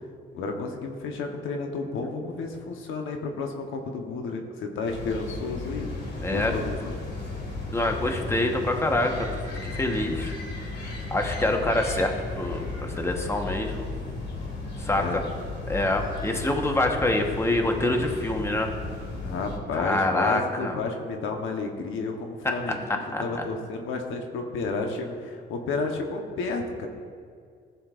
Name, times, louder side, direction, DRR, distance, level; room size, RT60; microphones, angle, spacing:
voice 1, 0.3-5.9 6.3-7.0 14.9-15.2 19.2-26.9, left 3 dB, 85° left, 3 dB, 1.1 m, -31 dB
sound 1, 4.8-19.6, left 3 dB, 60° left, 1.9 m, -35 dB
voice 2, 7.7-10.3 11.1-13.8 14.8-15.2 15.7-18.7 19.8-20.8 23.1-23.4, left 1 dB, 15° left, 3 dB, 1.2 m, -26 dB
15.5 x 7.0 x 2.5 m, 2.2 s
cardioid pair, 90°, 20 cm